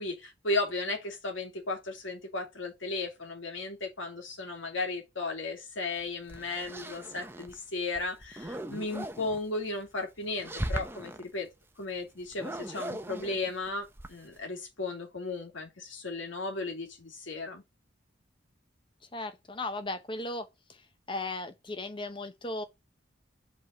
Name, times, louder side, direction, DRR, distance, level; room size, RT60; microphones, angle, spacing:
voice 1, 0.0-11.5 11.8-17.6, left 2 dB, 80° left, 2.6 m, -35 dB
sound 1, 6.0-7.6 7.9-9.4 10.2-11.2 12.3-14.4, right 1 dB, 10° right, 0.7 m, -38 dB
voice 2, 19.1-20.8 21.1-22.6, left 2 dB, 25° left, 0.8 m, -36 dB
5.5 x 4.4 x 5.4 m
head